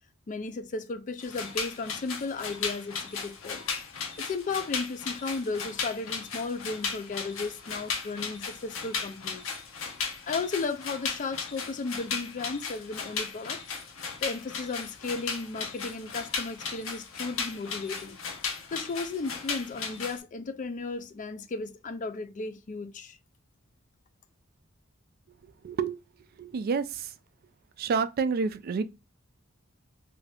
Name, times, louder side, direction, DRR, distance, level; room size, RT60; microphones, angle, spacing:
voice 1, 0.3-3.6 4.2-9.4 10.3-13.6 14.2-18.2 18.7-23.2, left 3 dB, 40° left, 0.4 m, -35 dB
sound 1, 1.2-20.2, left 5 dB, 70° left, 0.7 m, -36 dB
voice 2, 25.6-26.0 26.4-27.1 27.8-28.8, right 5 dB, 45° right, 0.3 m, -28 dB
2.6 x 2.4 x 3.2 m
head